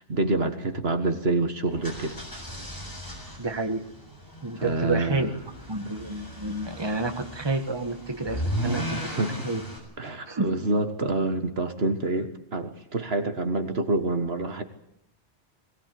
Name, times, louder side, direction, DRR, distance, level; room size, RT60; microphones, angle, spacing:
voice 1, 0.0-2.2 4.6-5.3 9.0-9.4 10.0-14.6, right 2 dB, 60° right, 8 dB, 1.9 m, -27 dB
sound 1, 1.7-9.8, equal, 15° left, 7.2 m, -36 dB
voice 2, 3.4-3.8 4.4-5.3 5.7-9.1 9.4-9.6 10.3-10.5, right 2 dB, 20° right, 6 dB, 1.8 m, -29 dB
22.0 x 18.5 x 9.5 m, 0.73 s
omnidirectional pair, 1.2 m